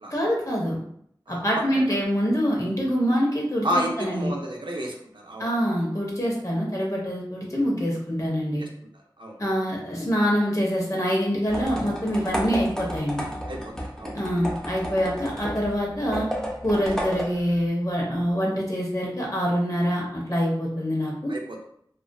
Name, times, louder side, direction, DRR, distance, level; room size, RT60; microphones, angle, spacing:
voice 1, 0.1-0.8 1.3-4.3 5.4-8.6 9.4-13.3 14.1-16.3 16.6-21.3, equal, 40° left, -3 dB, 0.8 m, -25 dB
voice 2, 1.3-2.0 3.6-5.5 5.9-6.0 8.6-8.7 9.2-9.4 13.5-14.1 21.3-21.6, equal, 75° right, 0 dB, 0.5 m, -31 dB
sound 1, 11.5-17.7, equal, 5° left, 0.5 m, -32 dB
2.4 x 2.4 x 2.2 m, 0.68 s
wide cardioid pair, 40°, 8 cm